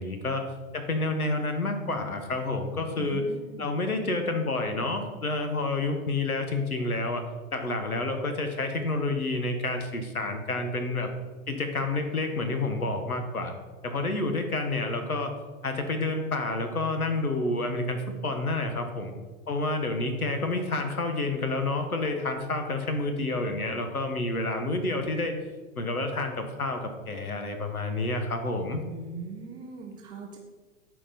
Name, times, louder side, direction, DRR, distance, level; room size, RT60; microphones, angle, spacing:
voice 1, 0.0-3.2 3.6-7.2 7.5-11.1 11.5-13.5 13.8-15.3 15.6-19.1 19.5-25.4 25.7-28.8, left 2 dB, 85° left, 6 dB, 1.3 m, -29 dB
voice 2, 3.0-3.7 28.9-30.4, right 5 dB, 10° right, 1 dB, 0.3 m, -40 dB
12.0 x 4.6 x 4.2 m, 1.3 s
figure-of-eight pair, 100°, 42 cm